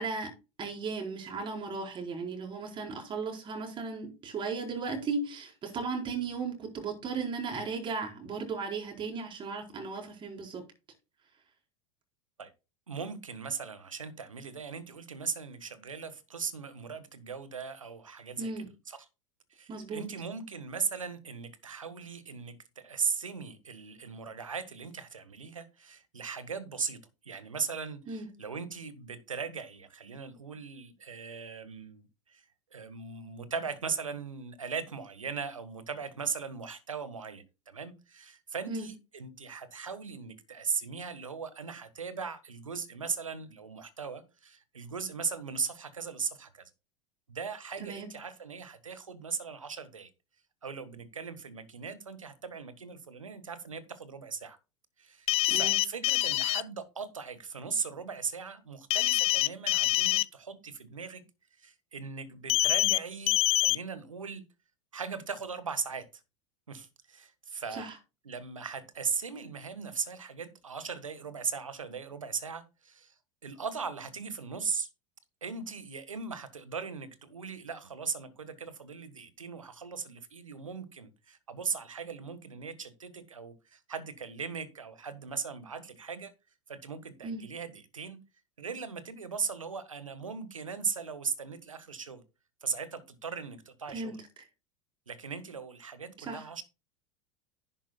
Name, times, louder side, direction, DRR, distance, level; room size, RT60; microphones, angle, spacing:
voice 1, 0.0-10.6 18.4-18.7 19.7-20.1 28.1-28.3 38.7-38.9 47.8-48.1 55.5-55.8 67.7-67.9 87.2-87.5 93.9-94.2 96.3-96.5, right 4 dB, 30° right, 4.3 m, -36 dB
voice 2, 12.9-18.5 18.9-19.1 19.5-27.0 27.2-32.4 32.7-46.7 47.3-50.1 50.6-54.6 55.0-61.2 61.6-64.4 64.9-66.1 66.7-67.9 68.2-73.1 73.4-74.9 75.4-86.3 86.7-88.2 88.6-92.2 92.6-94.2 95.1-96.6, right 5 dB, 80° right, 1.5 m, -38 dB
sound 1, 55.3-56.6 58.9-60.2 62.5-63.0 63.3-63.8, left 19 dB, 35° left, 0.5 m, -25 dB
11.0 x 9.9 x 2.3 m
figure-of-eight pair, 85°, 17 cm